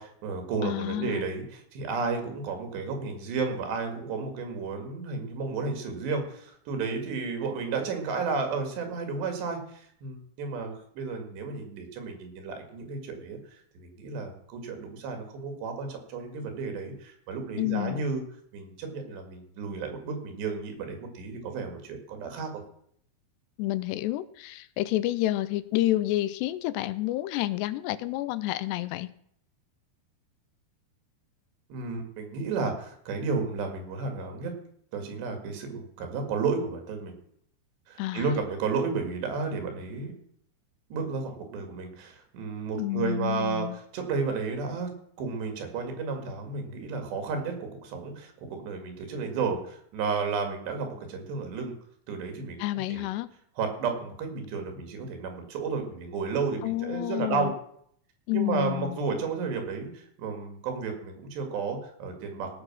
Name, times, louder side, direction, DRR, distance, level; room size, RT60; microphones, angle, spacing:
voice 1, 0.0-13.4 13.7-18.2 18.5-22.6 31.7-34.5 34.9-37.1 37.9-40.1 40.9-44.9 45.2-51.7 52.1-52.6 52.9-53.1 53.6-57.5 58.3-62.6, right 4 dB, 85° right, 5 dB, 4.3 m, -32 dB
voice 2, 0.6-1.3 17.6-18.0 23.6-29.1 38.0-38.3 42.8-43.8 52.6-53.3 56.6-57.5 58.3-59.0, left 16 dB, 85° left, 15 dB, 2.8 m, -29 dB
17.0 x 6.5 x 6.1 m, 0.67 s
omnidirectional pair, 4.8 m